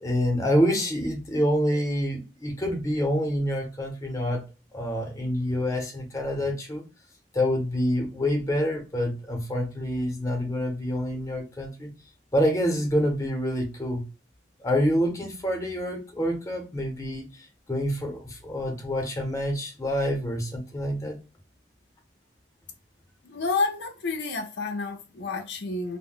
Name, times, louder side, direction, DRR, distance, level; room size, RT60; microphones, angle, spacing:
voice 1, 0.0-4.4 4.7-6.8 7.3-11.9 12.3-14.0 14.6-17.3 17.7-21.2, equal, 20° left, 0.8 m, -27 dB
voice 2, 23.2-26.0, left 3 dB, 75° left, 0.5 m, -29 dB
2.2 x 2.1 x 3.6 m
head